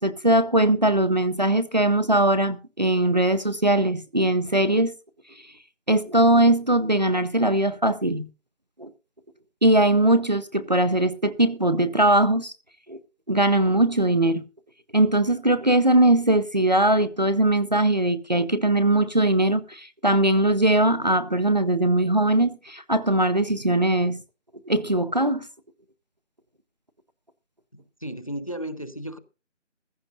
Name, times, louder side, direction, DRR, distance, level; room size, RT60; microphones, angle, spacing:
voice 1, 0.0-4.9 5.9-8.3 8.8-8.9 9.6-12.5 12.9-13.0 13.3-14.4 14.9-24.2 24.7-25.4, right 1 dB, 35° right, 0.6 m, -20 dB
voice 2, 27.7-29.2, right 1 dB, 30° left, 0.6 m, -34 dB
15.5 x 14.5 x 2.7 m
figure-of-eight pair, 170°, 37 cm